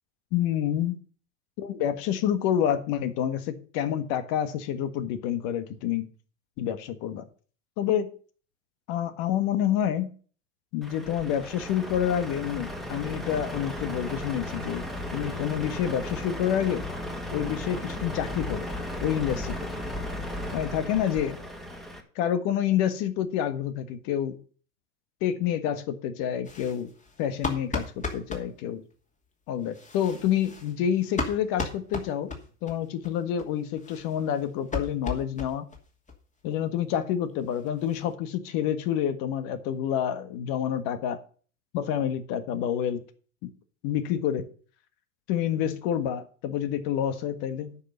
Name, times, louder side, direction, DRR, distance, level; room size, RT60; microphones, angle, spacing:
voice 1, 0.3-1.0 1.6-6.0 6.6-7.2 7.8-8.1 8.9-10.1 10.7-16.8 17.3-18.7 19.0-19.7 20.5-21.4 22.1-24.4 25.2-26.9 27.2-28.8 29.5-32.3 32.6-35.6 36.4-41.2 41.7-43.0 43.4-43.5 43.8-44.5 45.3-47.8, left 10 dB, 50° left, 11 dB, 1.6 m, -28 dB
Truck, 10.8-22.0, left 1 dB, ahead, 1.9 m, -35 dB
sound 1, 26.4-28.5 29.6-32.8 33.0-33.1 33.4-33.5 33.8-35.8 36.1-36.2 36.5-36.6 36.9-37.0 37.3-38.1, left 3 dB, 15° left, 2.7 m, -36 dB
9.8 x 5.9 x 7.9 m, 0.41 s
hypercardioid pair, 100°, 42 cm